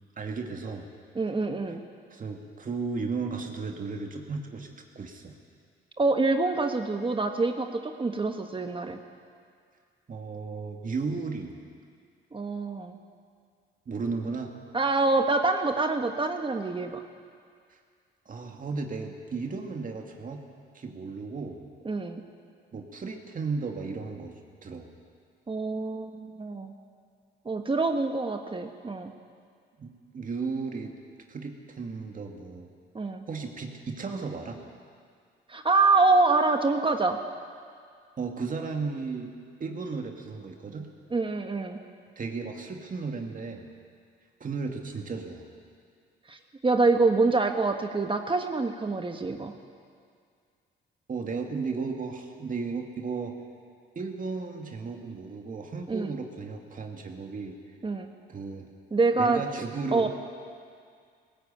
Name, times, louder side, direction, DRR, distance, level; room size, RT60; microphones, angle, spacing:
voice 1, 0.2-0.9 2.1-4.7 5.0-5.3 10.1-11.6 13.9-14.5 18.3-20.4 20.7-21.6 22.7-24.9 29.8-30.9 31.3-32.7 33.3-34.6 38.2-39.3 39.6-40.9 42.2-43.7 44.4-45.5 51.1-53.3 54.0-57.5 58.3-58.7 59.2-60.1, right 4 dB, 40° right, 3 dB, 2.2 m, -34 dB
voice 2, 1.1-1.8 6.0-9.0 12.3-13.0 14.7-17.0 21.8-22.2 25.5-26.7 27.4-29.1 32.9-33.2 35.5-37.2 41.1-41.8 46.3-46.4 46.6-49.5 55.9-56.1 57.8-58.1 58.9-59.4 59.9-60.1, right 3 dB, 25° right, 5 dB, 1.4 m, -26 dB
18.5 x 17.0 x 8.9 m, 2.2 s
cardioid pair, 90°, 20 cm